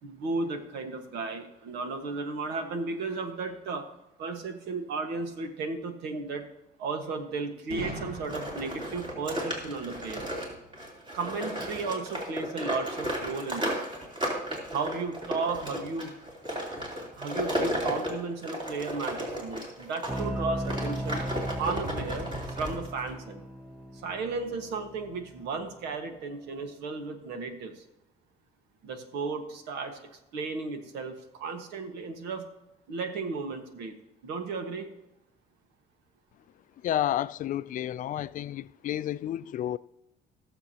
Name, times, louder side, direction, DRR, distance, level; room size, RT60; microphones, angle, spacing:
voice 1, 0.0-3.9 4.2-6.4 6.8-10.2 11.1-13.8 14.7-16.1 17.2-21.2 21.6-23.4 24.0-27.8 28.8-32.5 32.9-33.9 34.2-34.9, right 4 dB, 90° right, 1.6 m, -34 dB
Boom, 7.7-11.5, equal, 65° right, 2.5 m, -43 dB
sound 1, 8.2-20.2 20.6-23.1, equal, 30° right, 3.4 m, -34 dB
sound 2, 20.1-25.7, right 1 dB, 5° right, 1.0 m, -37 dB
voice 2, 36.8-39.8, left 11 dB, 50° left, 0.4 m, -31 dB
20.0 x 7.1 x 2.9 m
cardioid pair, 110°, 17 cm